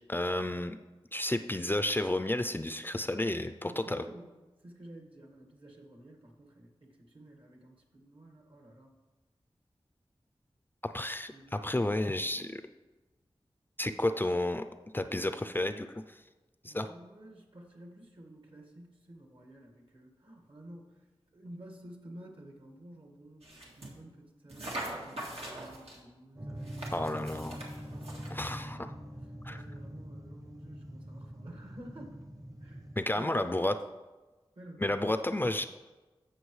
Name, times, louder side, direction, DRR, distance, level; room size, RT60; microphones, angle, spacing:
voice 1, 0.1-0.8 1.1-4.0 10.9-11.3 11.6-12.6 13.8-14.6 14.9-15.9 16.6-16.9 26.9-27.6 28.3-28.9 29.4-29.6 33.0-33.7 34.8-35.7, left 1 dB, 20° left, 9 dB, 0.4 m, -31 dB
voice 2, 3.6-9.0 11.3-11.6 12.0-12.6 16.6-21.0 21.3-27.5 27.8-28.9 29.2-32.2 32.6-33.8 34.6-35.7, right 1 dB, 60° right, 1 dB, 1.8 m, -52 dB
sound 1, 23.4-24.0 24.5-26.0 26.6-28.6, right 1 dB, 85° right, 1.7 m, -42 dB
sound 2, 26.3-33.0, equal, 35° right, 0.9 m, -44 dB
15.0 x 6.0 x 3.2 m, 1.2 s
wide cardioid pair, 80°, 10 cm